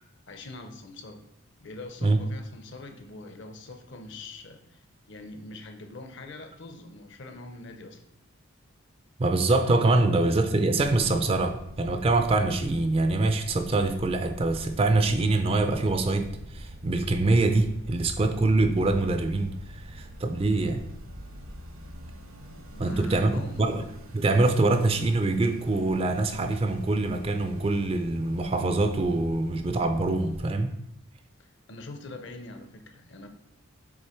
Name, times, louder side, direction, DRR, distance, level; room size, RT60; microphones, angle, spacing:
voice 1, 0.3-1.2 1.6-8.0 22.7-23.7 31.7-33.3, left 2 dB, 55° left, 6 dB, 0.7 m, -43 dB
voice 2, 9.2-20.8 22.8-23.8 24.1-30.7, right 2 dB, 25° right, 7 dB, 0.4 m, -24 dB
sound 1, 10.7-30.5, equal, 70° right, 0.9 m, -43 dB
6.5 x 3.8 x 4.3 m, 0.78 s
head